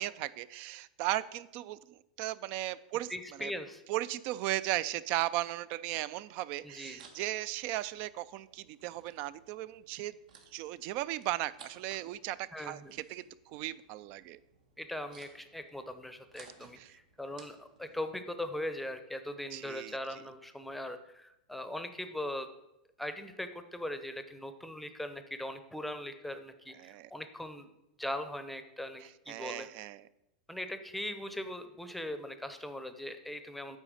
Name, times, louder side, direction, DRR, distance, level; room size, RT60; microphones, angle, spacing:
voice 1, 0.0-3.1 3.4-3.5 3.9-10.1 10.5-14.4 16.8-17.0 19.5-20.0 26.8-27.1 29.0-30.1, right 15 dB, 45° right, 18 dB, 0.4 m, -36 dB
voice 2, 3.1-3.8 6.6-7.1 12.5-12.9 14.8-22.5 23.0-27.7 28.0-29.7 30.5-33.8, left 1 dB, ahead, 9 dB, 0.7 m, -40 dB
sound 1, 6.6-18.0, right 5 dB, 80° right, 1.5 m, -60 dB
8.9 x 4.2 x 6.3 m, 0.88 s
supercardioid pair, 135°, 4 cm